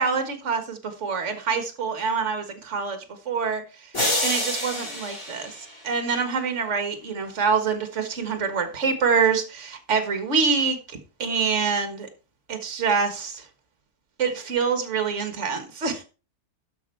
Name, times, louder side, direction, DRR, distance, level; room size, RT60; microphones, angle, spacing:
voice 1, 0.0-3.0 3.3-3.9 4.2-12.1 12.5-13.4 14.2-16.0, right 5 dB, 45° right, 7 dB, 1.8 m, -26 dB
sound 1, 3.9-6.3, left 1 dB, 40° left, 4.3 m, -28 dB
12.0 x 5.4 x 4.5 m, 0.34 s
omnidirectional pair, 1.8 m